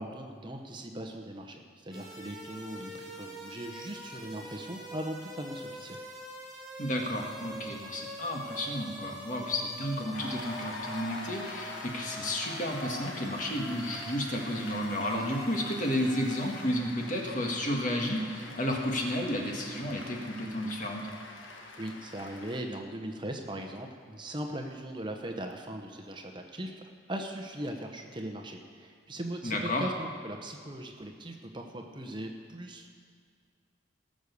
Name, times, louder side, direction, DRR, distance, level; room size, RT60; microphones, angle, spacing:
voice 1, 0.0-6.0 21.8-26.7 27.1-32.9, right 1 dB, 25° right, 3 dB, 0.9 m, -39 dB
sound 1, 1.9-16.6, equal, 5° right, 3.1 m, -45 dB
voice 2, 6.8-21.1 29.4-29.9, left 1 dB, 40° left, 1 dB, 1.7 m, -32 dB
Cheering / Applause, 10.1-22.6, left 2 dB, 90° left, 1.5 m, -44 dB
18.5 x 6.4 x 6.9 m, 2.1 s
head